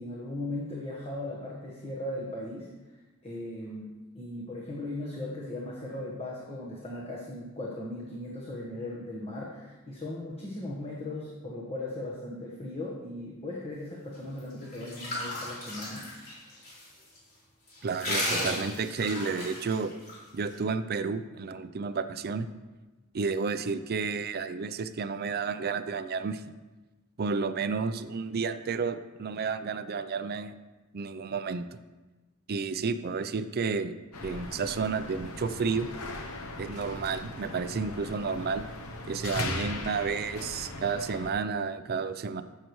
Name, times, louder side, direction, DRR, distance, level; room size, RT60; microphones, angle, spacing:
voice 1, 0.0-2.7 3.2-16.1, left 1 dB, 30° left, -4 dB, 1.2 m, -38 dB
sound 1, 14.4-16.8 17.1-17.2 17.7-20.1, left 1 dB, 45° left, 3.6 m, -34 dB
voice 2, 17.8-19.9 20.3-22.5 23.1-26.4 27.2-30.5 30.9-31.7 32.5-33.9 34.2-35.9 36.6-38.6 39.1-42.4, right 5 dB, 45° right, 11 dB, 0.5 m, -31 dB
sound 2, 34.1-41.3, left 2 dB, 80° left, 0.8 m, -38 dB
15.0 x 6.6 x 3.1 m, 1.2 s
head